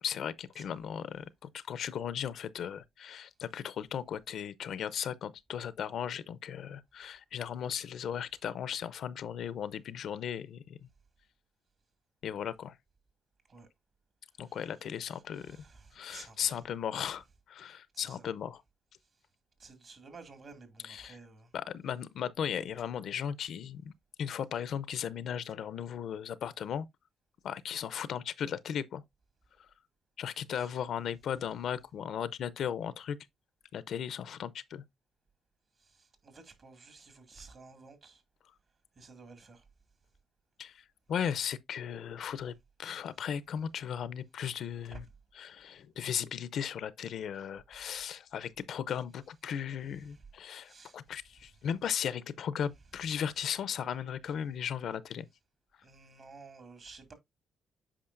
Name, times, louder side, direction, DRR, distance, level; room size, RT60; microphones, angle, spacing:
voice 1, 0.0-10.8 12.2-12.8 14.4-15.6 15.9-18.6 20.8-21.2 21.5-23.9 24.2-26.9 27.4-29.0 29.6-29.7 30.2-33.2 33.7-34.8 40.6-42.5 42.8-45.0 45.3-55.3, left 8 dB, 65° left, 0.5 m, -36 dB
voice 2, 15.3-16.6 17.9-18.3 19.6-21.5 30.6-30.7 35.8-38.2 39.0-39.6 44.9-45.0 50.1-50.2 50.6-51.0 55.8-57.1, right 4 dB, 45° right, 2.1 m, -53 dB
8.6 x 5.1 x 2.5 m
cardioid pair, 90°, 0 cm